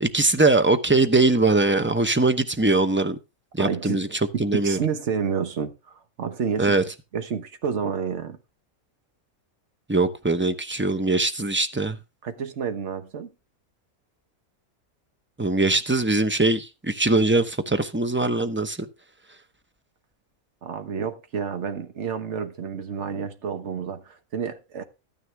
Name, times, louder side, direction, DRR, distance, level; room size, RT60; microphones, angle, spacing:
voice 1, 0.0-3.2 3.6-4.1 4.4-4.8 6.6-6.8 9.9-12.0 15.4-18.8, right 2 dB, 10° right, 0.6 m, -21 dB
voice 2, 3.6-4.0 4.3-6.8 7.1-8.4 12.2-13.3 20.6-24.8, right 6 dB, 55° right, 1.4 m, -29 dB
13.0 x 9.7 x 3.4 m
omnidirectional pair, 1.5 m